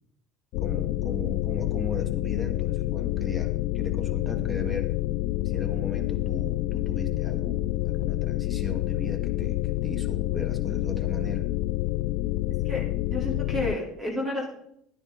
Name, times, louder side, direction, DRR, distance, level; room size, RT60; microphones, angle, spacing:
sound 1, 0.5-13.8, left 17 dB, 70° left, 0.3 m, -28 dB
voice 1, 0.6-4.9 5.4-11.4, left 1 dB, ahead, 1 dB, 2.0 m, -37 dB
voice 2, 12.6-14.5, left 1 dB, 25° right, -2 dB, 4.0 m, -31 dB
11.5 x 9.8 x 4.2 m, 0.70 s
supercardioid pair, 110°, 0 cm